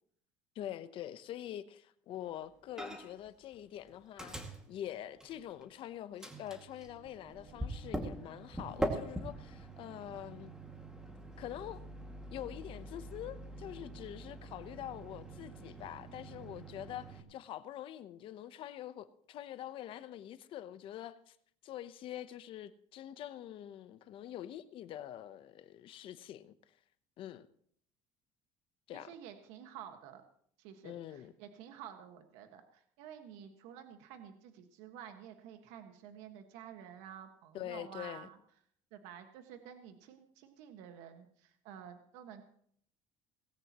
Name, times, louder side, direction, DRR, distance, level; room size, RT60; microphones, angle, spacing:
voice 1, 0.5-4.4 4.7-10.5 11.4-11.8 12.3-21.4 21.6-26.5 27.2-27.5 28.9-29.1 30.8-31.3 37.5-38.3, left 12 dB, 50° left, 0.9 m, -45 dB
Microwave oven, 2.8-3.3 3.5-5.8 6.2-17.2, right 1 dB, 5° right, 2.1 m, -43 dB
voice 2, 28.9-30.2 30.6-38.4 38.9-42.4, right 9 dB, 80° right, 1.6 m, -51 dB
18.5 x 17.0 x 3.0 m
cardioid pair, 135°, 11 cm